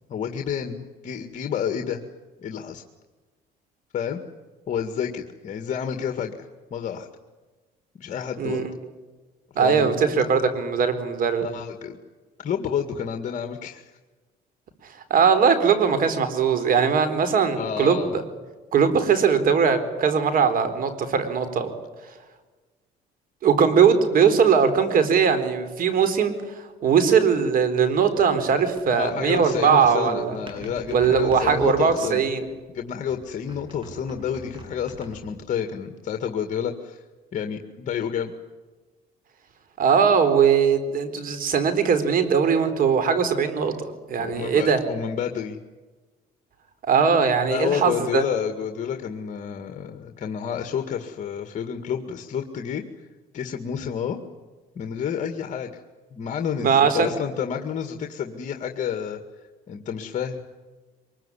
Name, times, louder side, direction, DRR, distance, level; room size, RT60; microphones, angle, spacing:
voice 1, 0.1-2.1 2.4-2.8 3.9-4.2 4.7-7.1 8.0-8.7 9.6-10.0 11.4-12.0 12.4-13.9 17.5-18.2 28.9-32.3 32.7-37.0 37.3-38.3 44.2-45.6 47.5-52.8 53.3-54.2 54.8-55.8 56.1-59.2 59.7-60.4, left 8 dB, 45° left, 5 dB, 2.0 m, -30 dB
voice 2, 9.6-11.5 15.1-18.2 18.7-21.7 23.4-26.3 26.8-30.4 30.9-32.5 39.8-44.8 46.8-48.2 56.6-57.1, right 6 dB, 55° right, 10 dB, 4.2 m, -20 dB
sound 1, 28.5-32.7 33.1-35.5, right 2 dB, 30° right, 7.5 m, -43 dB
24.0 x 22.0 x 10.0 m, 1.3 s
cardioid pair, 110°, 17 cm